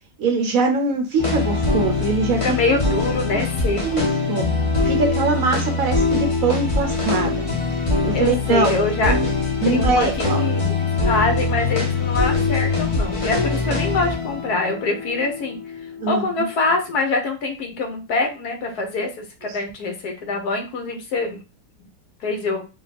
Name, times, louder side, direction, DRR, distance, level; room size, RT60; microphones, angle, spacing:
voice 1, 0.2-2.4 3.3-3.4 3.8-4.4 4.8-7.4 8.0-9.2 9.6-10.4 16.0-16.5, right 4 dB, 65° right, 4 dB, 1.1 m, -22 dB
sound 1, 1.2-16.4, left 3 dB, 30° left, 0.6 m, -23 dB
voice 2, 2.4-4.1 8.1-9.1 9.7-10.1 10.4-10.8 11.0-15.6 16.1-21.4 22.2-22.6, left 3 dB, 70° left, 4 dB, 1.3 m, -24 dB
3.6 x 2.3 x 4.0 m, 0.30 s
omnidirectional pair, 1.7 m